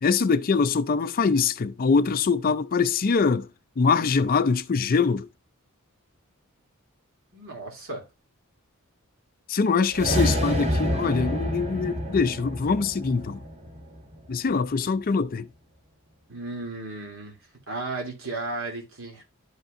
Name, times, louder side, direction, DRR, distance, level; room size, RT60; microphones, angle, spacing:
voice 1, 0.0-3.5 3.8-5.3 9.5-13.4 14.3-15.5, left 5 dB, 40° left, 0.4 m, -23 dB
voice 2, 7.3-8.0 10.1-10.2 16.3-17.4 17.7-19.2, right 2 dB, 70° right, 2.7 m, -34 dB
sound 1, 9.9-14.3, equal, 30° right, 1.6 m, -28 dB
11.5 x 5.3 x 2.5 m
head